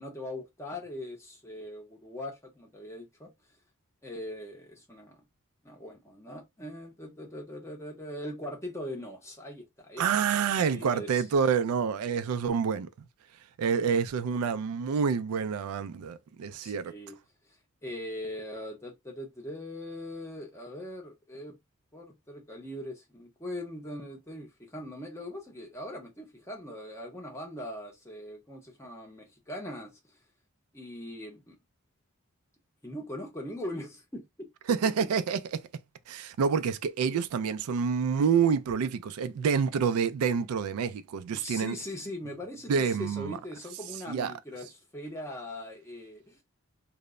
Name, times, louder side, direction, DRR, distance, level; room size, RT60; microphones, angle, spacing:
voice 1, 0.0-3.3 4.0-5.2 5.6-10.0 10.3-10.4 10.7-11.2 16.6-17.2 17.8-21.6 21.9-29.9 30.7-31.5 32.8-34.2 41.3-46.4, left 1 dB, 15° left, 0.6 m, -41 dB
voice 2, 10.0-12.9 13.6-16.9 34.7-35.6 36.1-41.8 42.7-43.4 44.1-44.3, right 6 dB, 85° right, 0.3 m, -27 dB
2.1 x 2.0 x 3.5 m
head